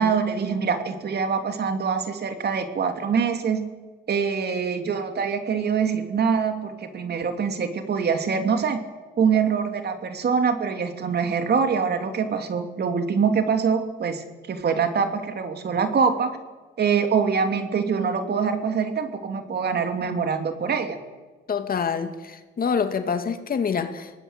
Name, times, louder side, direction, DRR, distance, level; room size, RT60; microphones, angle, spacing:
voice 1, 0.0-3.6 4.1-8.8 9.2-16.3 16.8-21.0, right 6 dB, 55° right, 6 dB, 3.0 m, -24 dB
voice 2, 21.5-24.1, left 6 dB, 45° left, 8 dB, 2.3 m, -26 dB
25.5 x 19.0 x 8.2 m, 1.2 s
cardioid pair, 90°, 20 cm